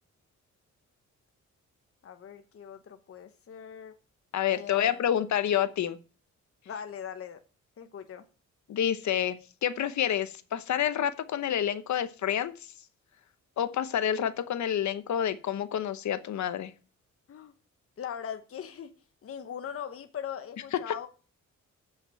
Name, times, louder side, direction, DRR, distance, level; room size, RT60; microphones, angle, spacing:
voice 1, 2.0-3.9 4.5-5.0 6.6-7.4 7.8-8.2 17.3-17.5 18.0-18.9 19.2-21.1, left 8 dB, 50° left, 1.1 m, -40 dB
voice 2, 4.3-6.0 8.7-12.7 13.6-16.7 20.7-20.8, left 10 dB, 70° left, 1.1 m, -28 dB
7.7 x 6.3 x 7.6 m
cardioid pair, 115°, 29 cm